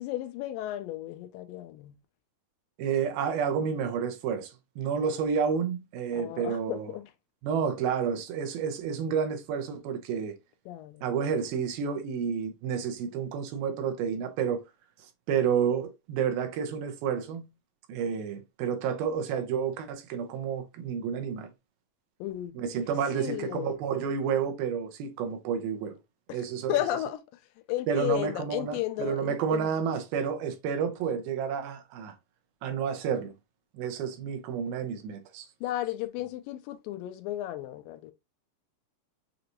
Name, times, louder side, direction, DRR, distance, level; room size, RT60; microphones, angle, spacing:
voice 1, 0.0-2.0 6.1-7.1 10.7-11.1 22.2-22.6 23.1-23.8 26.3-27.2 27.7-29.7 35.6-38.1, left 14 dB, 80° left, 2.1 m, -34 dB
voice 2, 2.8-4.5 4.8-6.9 7.4-10.4 11.0-14.6 15.3-17.5 17.9-21.5 22.6-26.0 26.3-26.8 27.9-32.1 32.6-33.3 33.7-35.5, right 7 dB, 90° right, 2.7 m, -30 dB
6.6 x 2.6 x 2.9 m
omnidirectional pair, 4.2 m